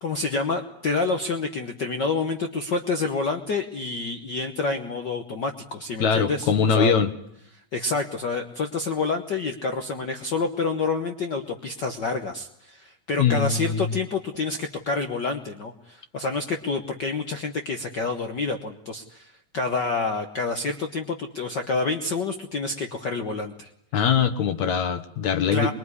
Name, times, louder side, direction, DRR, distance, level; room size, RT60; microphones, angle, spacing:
voice 1, 0.0-6.9 7.7-23.7 25.5-25.7, left 3 dB, 85° left, 6 dB, 0.9 m, -28 dB
voice 2, 6.0-7.1 13.2-14.0 23.9-25.7, left 6 dB, 65° left, 9 dB, 2.4 m, -22 dB
24.5 x 22.0 x 9.7 m, 0.70 s
omnidirectional pair, 3.9 m